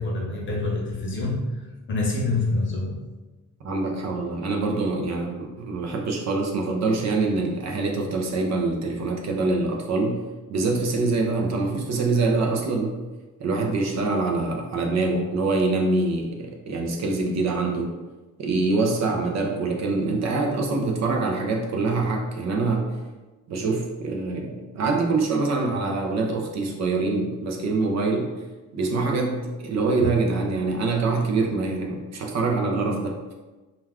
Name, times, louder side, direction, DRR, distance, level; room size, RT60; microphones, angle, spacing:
voice 1, 0.0-1.5 1.9-3.0, left 2 dB, 35° left, -2 dB, 0.6 m, -26 dB
voice 2, 3.6-10.2 10.5-13.0 13.4-18.0 18.4-23.0 23.5-28.3 28.7-33.3, right 3 dB, 55° right, 1 dB, 0.5 m, -25 dB
2.3 x 2.3 x 3.3 m, 1.2 s
wide cardioid pair, 160°, 33 cm